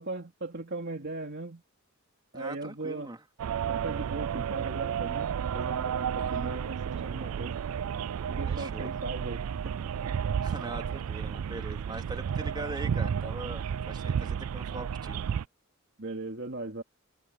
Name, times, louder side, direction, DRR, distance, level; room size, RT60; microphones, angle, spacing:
voice 1, 0.0-1.6 2.3-3.1 3.7-7.6 8.3-9.7 16.0-16.8, right 2 dB, 55° right, 2.6 m, -38 dB
voice 2, 2.3-3.2 6.2-6.4 8.5-8.9 10.4-15.2, right 2 dB, 20° right, 2.5 m, -41 dB
sound 1, 3.4-15.4, right 7 dB, 90° right, 0.4 m, -32 dB
head